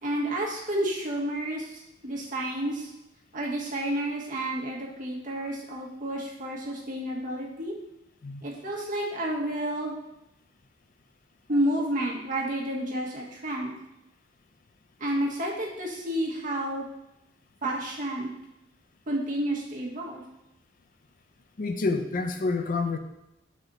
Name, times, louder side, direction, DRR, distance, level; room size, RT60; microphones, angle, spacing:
voice 1, 0.0-2.9 3.3-7.7 8.4-9.9 11.5-13.7 15.0-16.8 17.6-18.3 19.1-20.2, right 1 dB, 45° right, -2 dB, 1.2 m, -30 dB
voice 2, 21.6-23.0, left 3 dB, 50° left, 6 dB, 0.5 m, -28 dB
6.0 x 4.2 x 3.9 m, 0.86 s
head